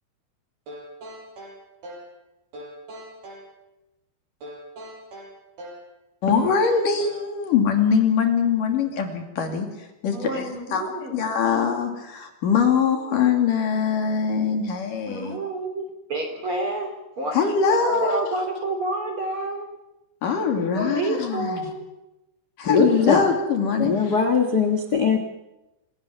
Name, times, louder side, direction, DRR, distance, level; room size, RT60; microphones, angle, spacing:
sound 1, 0.7-2.1 2.5-3.5 4.4-5.9 6.3-7.3, right 1 dB, 65° right, 8.8 m, -40 dB
voice 1, 6.2-9.7 10.0-10.4 10.7-15.4 17.3-18.3 20.2-21.6 22.6-24.2, left 6 dB, 55° left, 4 dB, 4.1 m, -22 dB
voice 2, 10.1-11.1 15.1-15.8 16.1-16.9 17.2-17.3 17.7-19.7 20.7-21.8, right 2 dB, 35° right, 3 dB, 3.5 m, -29 dB
voice 3, 22.6-23.3 23.8-25.2, left 5 dB, 75° left, 6 dB, 0.9 m, -20 dB
27.0 x 17.5 x 7.6 m, 0.99 s
omnidirectional pair, 4.7 m